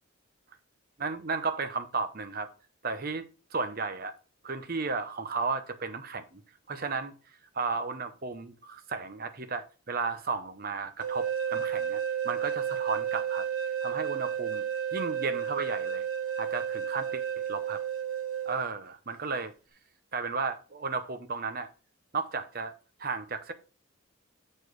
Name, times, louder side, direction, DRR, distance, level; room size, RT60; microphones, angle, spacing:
voice 1, 1.0-2.5 2.8-3.2 3.5-4.1 4.4-6.4 6.7-7.1 7.5-13.4 13.8-14.6 14.9-16.1 16.4-17.2 17.5-17.8 18.4-19.5 20.1-21.7 22.1-22.7 23.0-23.5, right 4 dB, 40° right, 0.8 m, -34 dB
sound 1, 11.0-18.6, right 8 dB, 75° right, 1.2 m, -32 dB
7.1 x 4.4 x 4.7 m
head